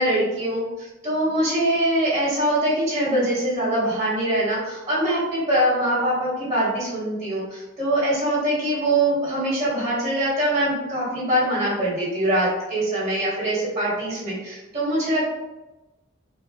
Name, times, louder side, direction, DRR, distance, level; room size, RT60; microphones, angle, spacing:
voice 1, 0.0-15.2, right 1 dB, 35° right, -10 dB, 1.3 m, -23 dB
3.9 x 2.1 x 2.3 m, 1.1 s
head